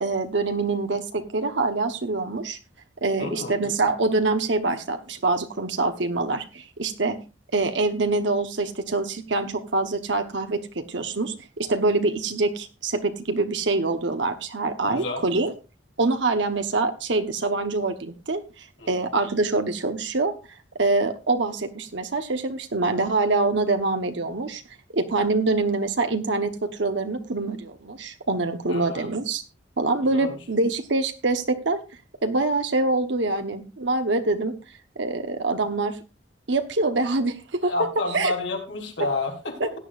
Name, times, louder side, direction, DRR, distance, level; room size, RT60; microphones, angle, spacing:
voice 1, 0.0-2.6 3.0-7.2 7.5-15.5 16.0-20.3 20.8-24.6 24.9-29.4 29.8-31.8 32.2-34.5 35.0-36.0 36.5-38.3 39.6-39.8, right 3 dB, 75° right, 7 dB, 1.1 m, -25 dB
voice 2, 3.2-3.5 14.9-15.3 18.8-19.0 28.7-29.1 30.1-30.4 37.6-39.7, left 3 dB, 80° left, 2 dB, 3.6 m, -30 dB
17.0 x 9.9 x 2.5 m, 0.30 s
head